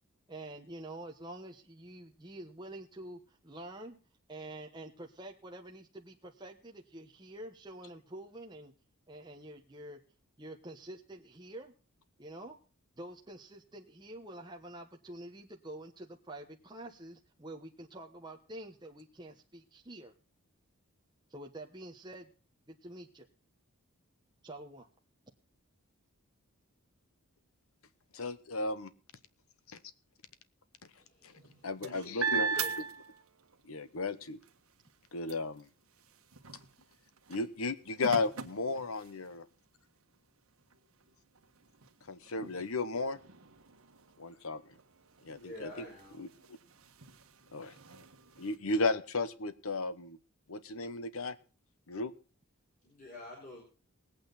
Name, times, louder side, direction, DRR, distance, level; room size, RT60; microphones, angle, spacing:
voice 1, 0.3-4.0 4.3-8.7 9.1-10.0 10.4-11.7 12.2-12.6 13.0-20.1 21.3-22.3 22.7-23.3 24.4-24.9, right 1 dB, 20° right, 1 dB, 1.1 m, -47 dB
voice 2, 28.1-28.9 31.2-31.3 31.6-32.5 33.6-34.4 35.1-35.7 37.3-39.5 42.1-43.2 44.2-44.6 45.2-45.7 46.2-46.3 47.5-47.7 48.4-50.2 50.5-51.4 51.9-52.1, left 3 dB, 75° left, 14 dB, 1.0 m, -34 dB
voice 3, 30.9-32.7 45.2-46.2 52.8-53.6, left 1 dB, 35° left, -2 dB, 4.3 m, -49 dB
sound 1, 31.3-33.7 34.1-39.5 40.1-40.2 40.6-48.6, right 5 dB, 80° right, 1.4 m, -41 dB
19.5 x 8.8 x 4.0 m, 0.35 s
head